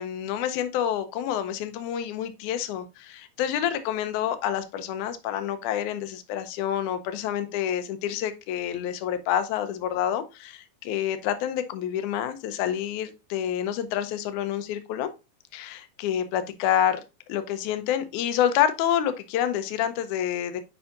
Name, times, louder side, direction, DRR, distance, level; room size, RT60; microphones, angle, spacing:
voice 1, 0.0-15.1 15.5-17.0 17.3-20.6, left 10 dB, 75° left, 2.0 m, -28 dB
7.0 x 5.5 x 2.5 m
omnidirectional pair, 3.9 m